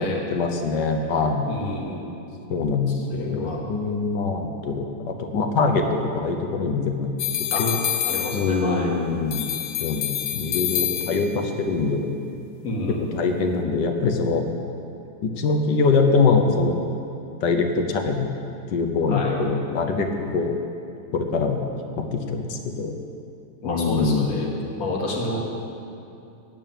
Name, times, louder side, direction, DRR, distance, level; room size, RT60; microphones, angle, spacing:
voice 1, 0.0-1.5 2.5-7.1 7.6-7.8 8.3-9.5 9.8-12.1 13.1-14.5 15.2-16.8 17.4-18.3 18.7-20.6 21.1-21.7 22.0-23.0 23.6-24.3, left 4 dB, 65° left, 5 dB, 1.5 m, -23 dB
voice 2, 1.5-2.1 3.0-3.6 7.5-7.7 8.1-8.9 12.6-13.1 19.1-19.4 23.6-24.5 24.8-25.4, left 2 dB, 45° left, -1 dB, 2.0 m, -29 dB
sound 1, 7.2-8.8 9.3-11.5, left 11 dB, 85° left, 1.5 m, -27 dB
9.0 x 8.4 x 9.0 m, 2.6 s
omnidirectional pair, 2.2 m